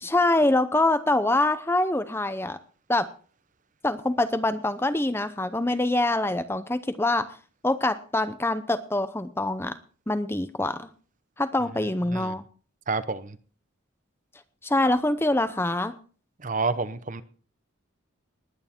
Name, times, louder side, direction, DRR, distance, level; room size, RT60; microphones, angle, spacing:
voice 1, 0.0-2.6 2.9-3.1 3.8-7.4 7.6-9.8 10.1-10.9 11.4-12.4 14.6-15.9, left 2 dB, 10° left, 12 dB, 0.6 m, -25 dB
voice 2, 12.9-13.4 16.4-17.2, right 4 dB, 35° right, 14 dB, 0.8 m, -29 dB
19.5 x 9.5 x 4.4 m, 0.40 s
head